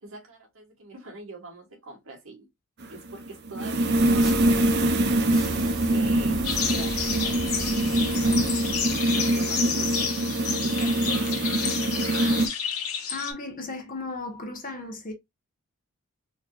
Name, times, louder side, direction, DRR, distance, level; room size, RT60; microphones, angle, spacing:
voice 1, 0.0-2.5 2.9-5.0 5.8-7.4 8.6-10.1 10.6-11.8, right 2 dB, 65° right, 1.9 m, -44 dB
sound 1, 2.8-12.5, right 1 dB, 50° right, 0.6 m, -24 dB
sound 2, 3.8-9.1, right 1 dB, ahead, 1.6 m, -37 dB
sound 3, 6.4-13.3, left 7 dB, 80° left, 1.1 m, -30 dB
voice 2, 13.1-15.1, left 3 dB, 40° left, 1.1 m, -35 dB
4.1 x 3.0 x 2.5 m
head